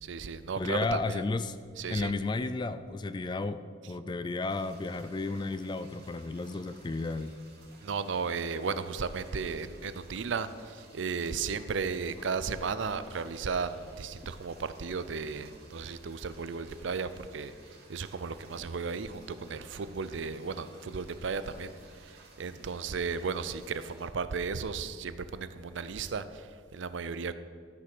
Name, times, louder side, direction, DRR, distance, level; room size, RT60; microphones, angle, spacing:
voice 1, 0.0-1.2 1.8-2.1 7.8-27.3, right 5 dB, 65° right, 13 dB, 0.5 m, -35 dB
voice 2, 0.6-1.6 1.9-7.4, left 3 dB, 20° left, 12 dB, 0.3 m, -33 dB
sound 1, 4.5-24.1, right 2 dB, 50° right, 2.5 m, -56 dB
12.5 x 5.9 x 6.1 m, 2.1 s
head